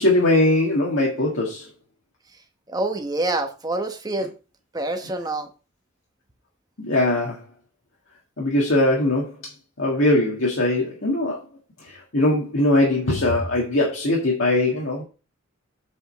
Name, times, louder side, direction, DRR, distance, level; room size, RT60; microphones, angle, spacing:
voice 1, 0.0-1.7 6.8-7.4 8.4-9.5 9.8-11.4 11.8-15.0, left 1 dB, 65° left, 1.8 m, -21 dB
voice 2, 2.7-4.3 4.7-5.5, right 2 dB, 20° right, 1.1 m, -26 dB
8.1 x 5.0 x 4.1 m
head